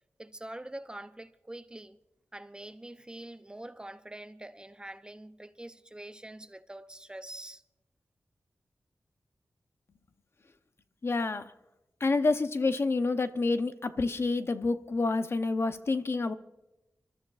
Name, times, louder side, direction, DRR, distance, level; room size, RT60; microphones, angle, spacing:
voice 1, 0.2-2.0 2.3-7.6, right 1 dB, 15° right, 0.5 m, -45 dB
voice 2, 11.0-11.5 12.0-16.3, left 3 dB, 45° left, 0.7 m, -28 dB
29.0 x 13.0 x 2.4 m
wide cardioid pair, 120°, 6 cm